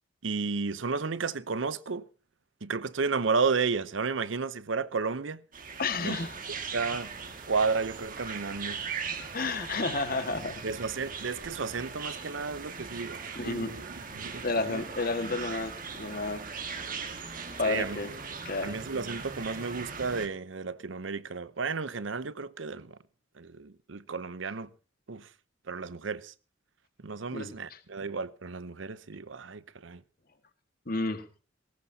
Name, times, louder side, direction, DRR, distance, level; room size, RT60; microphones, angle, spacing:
voice 1, 0.2-2.0 2.6-5.4 6.0-6.2 6.7-7.1 7.5-8.8 10.6-13.9 14.1-14.8 17.6-18.0 18.6-23.0 23.4-24.7 25.1-25.3 25.7-26.3 27.0-30.0, right 4 dB, 75° right, 0.8 m, -32 dB
sound 1, 5.5-20.3, right 5 dB, 45° right, 1.9 m, -40 dB
voice 2, 5.8-6.4 9.3-10.6 13.4-13.7 14.4-16.5 17.6-18.1 18.4-18.8 27.3-27.8 30.9-31.3, left 3 dB, 50° left, 1.8 m, -31 dB
19.0 x 17.5 x 2.8 m
head